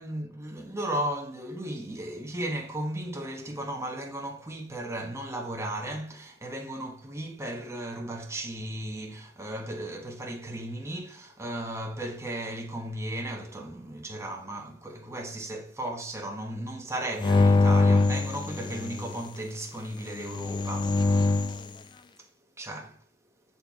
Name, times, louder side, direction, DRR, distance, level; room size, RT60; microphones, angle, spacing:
voice 1, 0.0-21.3 22.6-23.0, right 1 dB, 15° right, 1.1 m, -35 dB
sound 1, 17.2-19.2 20.2-21.7, left 3 dB, 20° left, 0.3 m, -23 dB
6.7 x 4.2 x 3.5 m
head